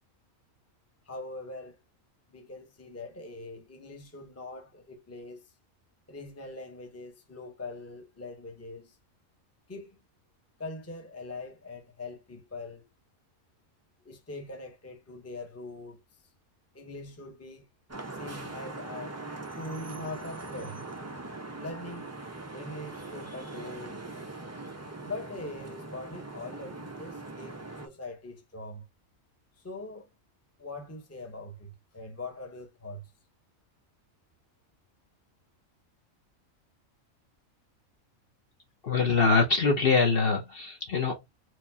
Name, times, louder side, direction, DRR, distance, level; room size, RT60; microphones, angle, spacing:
voice 1, 1.1-1.8 2.3-5.5 6.1-9.0 9.7-10.0 10.6-12.9 14.0-16.0 16.7-17.7 18.1-19.2 19.6-20.8 21.6-22.1 22.5-24.3 25.0-28.9 29.6-30.1 30.6-33.1, left 2 dB, 15° left, 0.7 m, -42 dB
Vehicle horn car horn honking / Traffic noise roadway noise, 17.9-27.9, right 2 dB, 25° right, 0.3 m, -41 dB
voice 2, 38.8-41.3, left 4 dB, 50° left, 0.9 m, -24 dB
4.5 x 2.5 x 2.7 m
omnidirectional pair, 1.4 m